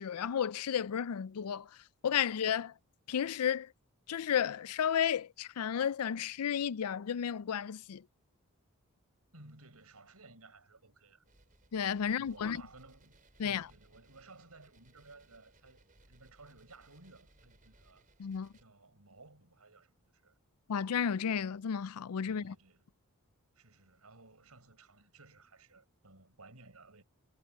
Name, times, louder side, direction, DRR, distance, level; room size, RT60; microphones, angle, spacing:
voice 1, 0.0-1.7 2.0-2.7 3.1-3.7 4.1-8.0 11.7-12.6 13.4-13.7 18.2-18.5 20.7-22.5, left 8 dB, 90° left, 0.4 m, -32 dB
voice 2, 9.3-11.2 12.2-13.2 13.4-18.0 18.6-20.4 22.2-23.0 23.5-27.0, right 3 dB, 85° right, 5.2 m, -57 dB
sound 1, 11.2-18.6, right 2 dB, 40° right, 4.6 m, -65 dB
head